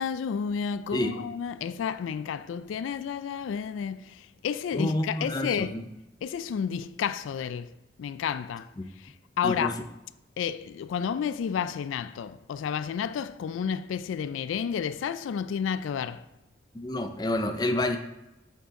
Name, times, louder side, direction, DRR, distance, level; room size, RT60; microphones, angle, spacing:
voice 1, 0.0-5.8 6.2-7.7 8.0-8.7 9.0-9.8 10.4-16.2, left 7 dB, 85° left, 0.3 m, -31 dB
voice 2, 4.7-5.8 8.8-8.9 9.4-9.7 16.7-18.0, left 1 dB, 20° left, 0.4 m, -28 dB
8.1 x 5.2 x 3.6 m
head